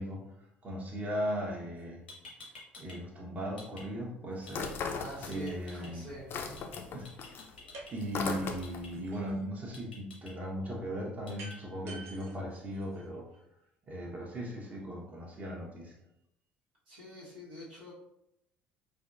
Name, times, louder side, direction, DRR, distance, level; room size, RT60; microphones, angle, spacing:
voice 1, 0.0-2.0 2.8-4.8 5.2-6.1 6.9-7.0 7.9-13.3 13.9-15.9, equal, 30° right, -2 dB, 0.9 m, -38 dB
sound 1, 1.8-1.9 2.1-3.0 3.3-3.8 4.5-4.7 5.3-5.9 6.6-6.8 7.0-7.9 8.6-8.9 9.7-10.3 11.3-11.6, left 3 dB, 85° left, 0.8 m, -50 dB
sound 2, 4.5-5.7 6.0-9.0, left 5 dB, 45° left, 0.5 m, -38 dB
voice 2, 5.0-6.3 16.9-17.9, right 1 dB, 75° right, -7 dB, 1.2 m, -45 dB
sound 3, 7.7-7.9 8.3-9.5 11.4-13.4, right 2 dB, 55° right, 0.7 m, -49 dB
4.6 x 2.2 x 2.4 m, 0.82 s
figure-of-eight pair, 60°, 5 cm